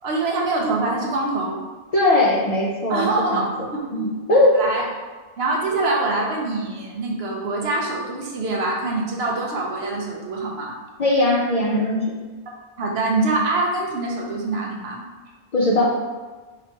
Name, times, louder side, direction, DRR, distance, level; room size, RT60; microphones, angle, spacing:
voice 1, 0.0-1.6 2.9-3.5 3.9-4.1 4.5-4.8 5.4-10.8 12.8-15.0, right 2 dB, 70° right, -1 dB, 0.9 m, -24 dB
voice 2, 1.9-3.5 3.9-4.6 11.0-12.1 15.5-15.8, left 1 dB, 50° left, -5 dB, 0.4 m, -19 dB
2.9 x 2.9 x 4.3 m, 1.3 s
omnidirectional pair, 1.1 m